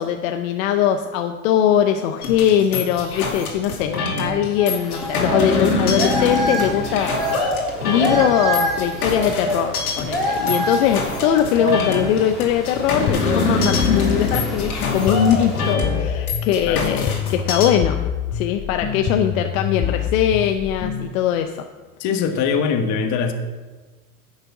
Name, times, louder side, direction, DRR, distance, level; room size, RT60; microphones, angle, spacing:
voice 1, 0.0-7.4 7.8-18.0 18.3-21.7, left 9 dB, 65° left, 6 dB, 0.8 m, -21 dB
sound 1, 2.2-17.7, left 3 dB, 90° left, 2.5 m, -25 dB
sound 2, 4.6-15.7, equal, ahead, 3.2 m, -27 dB
sound 3, 13.1-21.1, left 8 dB, 20° left, 0.4 m, -26 dB
voice 2, 22.0-23.3, left 6 dB, 40° left, 6 dB, 1.3 m, -22 dB
10.5 x 6.6 x 6.0 m, 1.3 s
hypercardioid pair, 110°, 43 cm